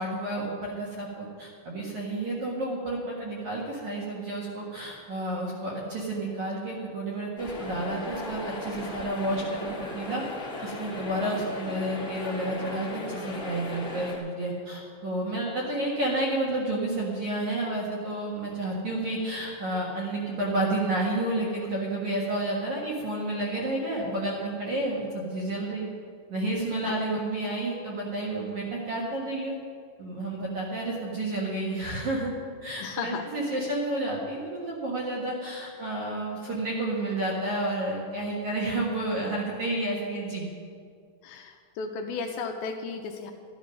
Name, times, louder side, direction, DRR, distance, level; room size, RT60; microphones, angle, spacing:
voice 1, 0.0-9.6 9.9-10.2 10.6-25.9 26.3-29.5 30.0-32.3 32.6-40.4, right 1 dB, 60° right, -4 dB, 2.1 m, -30 dB
sound 1, 7.4-14.2, left 1 dB, 45° left, 0.9 m, -37 dB
voice 2, 11.1-11.4 26.8-27.0 32.8-33.2 41.2-43.3, left 5 dB, 85° left, 4 dB, 2.6 m, -35 dB
13.0 x 11.0 x 5.3 m, 2.2 s
omnidirectional pair, 5.4 m